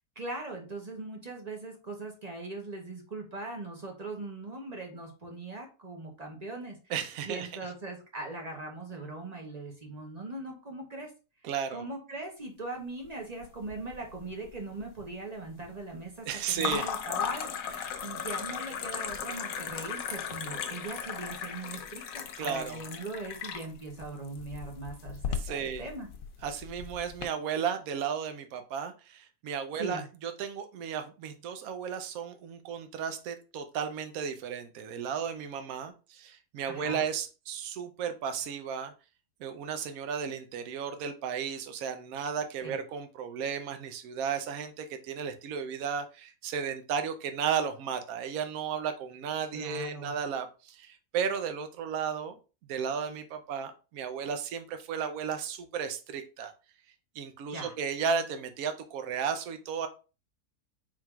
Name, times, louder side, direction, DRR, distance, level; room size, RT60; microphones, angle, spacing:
voice 1, 0.2-6.8 7.2-11.1 11.7-25.2 25.5-26.1 29.8-30.0 36.7-37.0 42.6-42.8 49.5-50.1 57.5-57.7, right 2 dB, 30° right, 1 dB, 0.8 m, -40 dB
voice 2, 6.9-7.5 11.4-11.8 16.3-16.9 22.4-22.8 25.3-25.8 26.4-38.9 39.4-52.4 52.7-56.5 57.2-59.9, right 7 dB, 70° right, 8 dB, 1.1 m, -34 dB
sound 1, 13.4-14.2 14.5-15.1 16.6-27.3, left 7 dB, 70° left, 1.0 m, -37 dB
4.5 x 3.7 x 2.3 m, 0.32 s
omnidirectional pair, 1.6 m